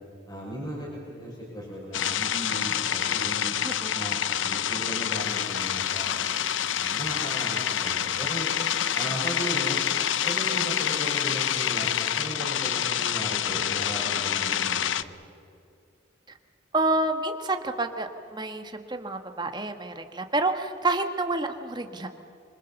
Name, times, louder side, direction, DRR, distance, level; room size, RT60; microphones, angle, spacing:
voice 1, 0.3-3.6 3.9-6.3 6.7-8.5 8.9-9.8 10.2-15.1, equal, 20° left, -4 dB, 6.2 m, -36 dB
sound 1, 1.9-15.0, left 9 dB, 75° left, 0.7 m, -27 dB
voice 2, 16.7-22.1, right 2 dB, 20° right, 6 dB, 1.4 m, -28 dB
26.0 x 25.5 x 7.1 m, 2.5 s
head